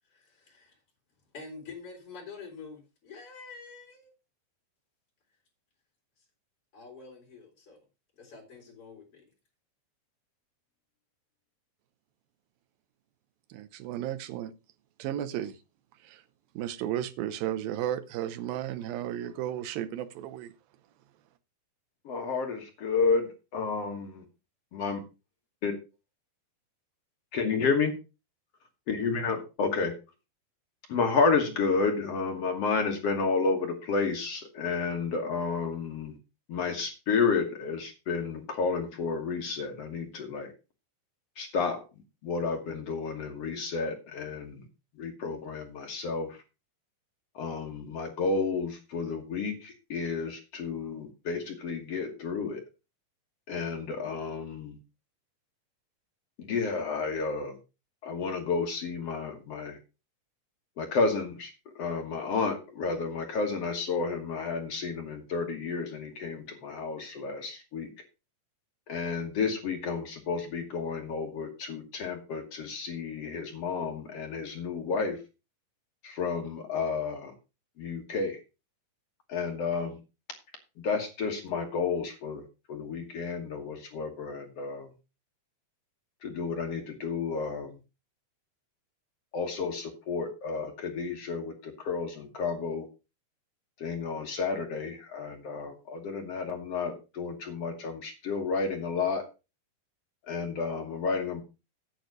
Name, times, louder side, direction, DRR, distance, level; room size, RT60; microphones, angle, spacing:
voice 1, 0.1-0.8 1.3-4.1 6.7-7.8 8.2-9.2, left 4 dB, 40° left, 4.6 m, -47 dB
voice 2, 13.5-14.5 15.0-15.6 16.0-16.2 16.6-20.5, right 11 dB, 80° right, 2.7 m, -34 dB
voice 3, 22.1-24.2 24.7-25.0 25.6-25.7 27.3-28.0 28.9-29.9 30.9-36.2 36.5-40.5 41.4-41.8 42.2-44.7 45.0-46.4 47.3-52.6 53.5-54.8 56.4-57.6 58.0-59.8 60.8-67.9 68.9-75.2 76.0-77.3 77.8-78.4 79.3-80.0 80.8-84.9 86.2-87.8 89.3-92.9 93.8-99.3 100.3-101.4, left 4 dB, 55° left, 2.0 m, -31 dB
9.2 x 8.1 x 4.7 m
omnidirectional pair, 4.2 m